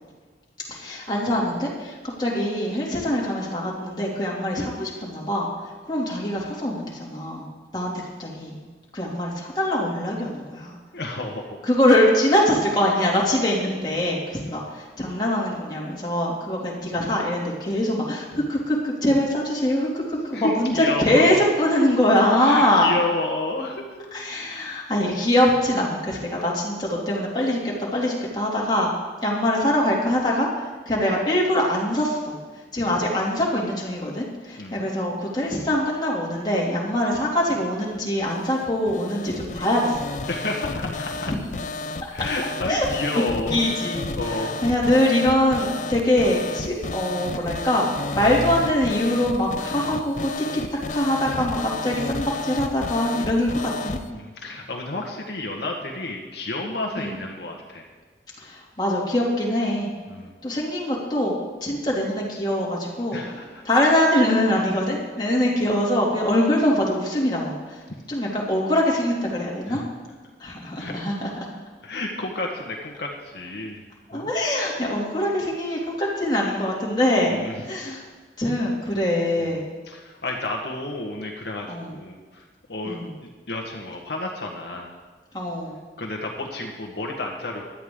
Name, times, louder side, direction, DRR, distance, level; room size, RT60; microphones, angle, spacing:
voice 1, 0.7-5.5 5.9-7.4 7.7-7.9 8.2-8.6 8.9-10.8 11.7-22.9 24.1-28.9 29.2-32.4 32.7-40.0 42.7-42.9 43.1-43.2 43.5-44.1 44.6-54.0 57.0-57.1 58.4-59.9 60.4-63.2 63.6-67.8 68.1-69.8 70.4-71.3 74.1-77.3 77.7-78.0 78.4-79.6 81.7-81.9 82.8-83.1 85.3-85.7, left 1 dB, 25° left, -4 dB, 2.8 m, -23 dB
voice 2, 10.9-11.6 14.0-14.1 14.4-14.6 20.3-21.4 22.4-24.0 32.8-33.0 34.6-34.9 40.3-41.3 42.1-43.6 44.2-44.5 54.1-57.9 60.1-60.6 63.1-63.6 67.9-68.1 69.7-69.9 70.8-71.3 71.8-73.8 74.1-74.3 77.3-77.6 79.4-79.6 79.9-84.9 86.0-87.7, left 2 dB, 70° left, 0 dB, 1.6 m, -31 dB
sound 1, 38.2-54.1, left 3 dB, 45° left, 0.6 m, -32 dB
16.5 x 12.0 x 3.8 m, 1.4 s
head